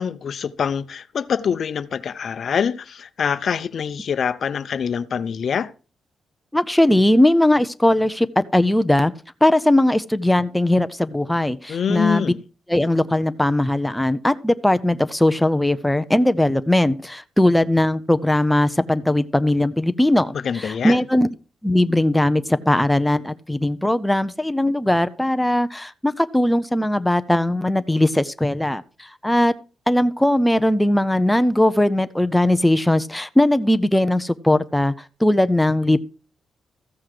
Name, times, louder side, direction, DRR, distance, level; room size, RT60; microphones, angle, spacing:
voice 1, 0.0-5.7 11.7-12.4 20.3-21.0, left 7 dB, 45° left, 0.6 m, -24 dB
voice 2, 6.5-9.1 9.4-12.3 12.7-21.3 21.6-29.5 29.9-34.9 35.2-36.0, left 1 dB, 5° left, 0.5 m, -19 dB
14.5 x 7.7 x 4.9 m
wide cardioid pair, 170°, 0 cm